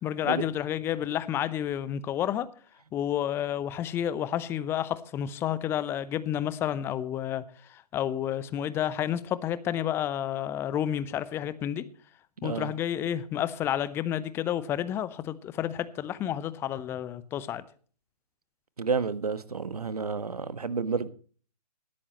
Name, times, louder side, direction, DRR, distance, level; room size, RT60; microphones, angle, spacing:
voice 1, 0.0-2.5 2.9-7.4 7.7-11.8 12.4-17.6, left 10 dB, 10° left, 0.7 m, -30 dB
voice 2, 18.8-21.1, right 5 dB, 65° right, 1.5 m, -30 dB
18.5 x 13.0 x 3.1 m
figure-of-eight pair, 130°, 21 cm